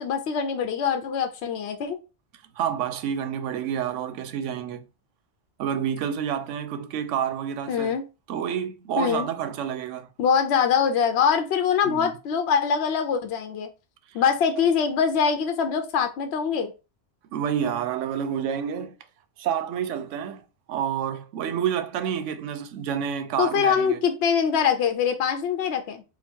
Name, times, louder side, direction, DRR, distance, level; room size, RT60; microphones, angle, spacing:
voice 1, 0.0-2.0 7.7-8.0 9.0-9.3 10.2-13.7 14.1-16.7 23.4-26.0, left 7 dB, 70° left, 0.8 m, -23 dB
voice 2, 2.6-4.9 5.6-7.9 8.3-10.1 11.8-12.1 17.3-19.0 19.4-20.4 20.7-24.0, right 8 dB, 90° right, 0.9 m, -29 dB
3.9 x 2.2 x 4.4 m
omnidirectional pair, 1.2 m